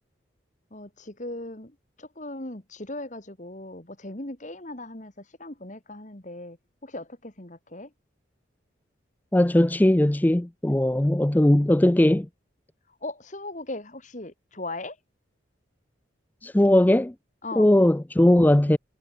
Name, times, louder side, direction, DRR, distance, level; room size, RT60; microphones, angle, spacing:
voice 1, 0.7-6.6 6.8-7.9 13.0-15.0 17.4-17.7, left 2 dB, 40° left, 2.2 m, -38 dB
voice 2, 9.3-12.3 16.4-17.1 17.6-18.8, left 1 dB, 10° left, 0.4 m, -19 dB
head